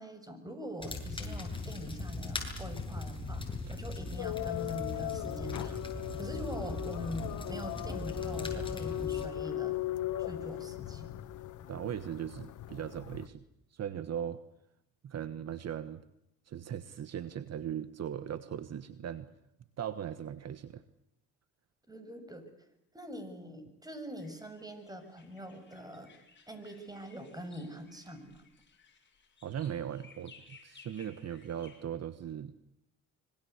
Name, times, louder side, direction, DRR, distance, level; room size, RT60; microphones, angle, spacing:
voice 1, 0.0-5.8 6.2-9.8 10.2-11.2 21.9-22.4 22.9-26.1 26.5-28.4, equal, 10° right, 9 dB, 6.9 m, -43 dB
sound 1, 0.8-9.3, left 2 dB, 15° left, 7.7 m, -39 dB
sound 2, 4.2-13.3, left 13 dB, 85° left, 1.5 m, -38 dB
voice 2, 11.7-13.4 13.7-14.4 15.0-16.0 16.5-19.3 19.8-20.8 29.4-32.6, right 9 dB, 55° right, 13 dB, 1.3 m, -39 dB
sound 3, 24.2-31.8, left 5 dB, 35° left, 7.1 m, -60 dB
26.0 x 23.5 x 8.2 m, 0.82 s
cardioid pair, 90°, 30 cm